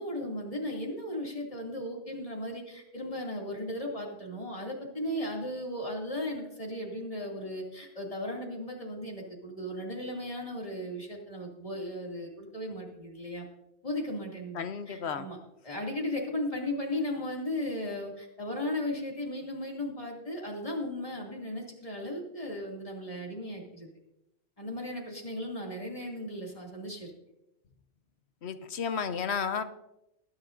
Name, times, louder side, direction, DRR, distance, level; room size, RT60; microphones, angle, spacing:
voice 1, 0.0-13.5 13.8-15.4 15.6-23.9 24.6-27.1, left 1 dB, 35° left, -1 dB, 2.6 m, -36 dB
voice 2, 14.5-15.2 28.4-29.6, left 6 dB, 80° left, 10 dB, 1.1 m, -32 dB
20.0 x 10.0 x 2.6 m, 0.86 s
omnidirectional pair, 1.1 m